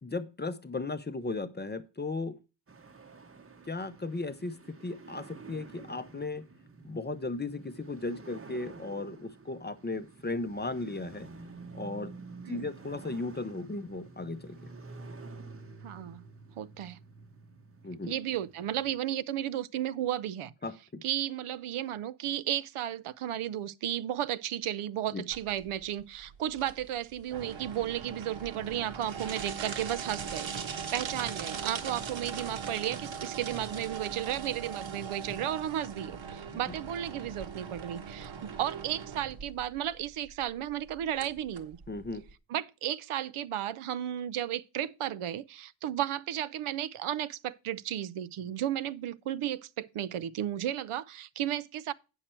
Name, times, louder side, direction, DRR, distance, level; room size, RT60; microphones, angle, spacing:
voice 1, 0.0-2.4 3.7-6.5 6.8-11.3 11.7-12.1 12.5-14.7 17.8-18.1 20.6-21.0 25.1-25.2 36.5-36.7 41.9-42.2, left 3 dB, 20° left, 0.5 m, -36 dB
sound 1, 2.7-19.0, right 3 dB, 30° right, 0.8 m, -49 dB
voice 2, 15.8-16.2 16.6-17.0 18.1-20.5 21.0-30.5 30.9-41.8 42.5-51.9, right 11 dB, 90° right, 0.6 m, -34 dB
sound 2, 25.3-42.3, right 6 dB, 70° right, 1.2 m, -40 dB
8.8 x 6.4 x 4.3 m
wide cardioid pair, 170°, 49 cm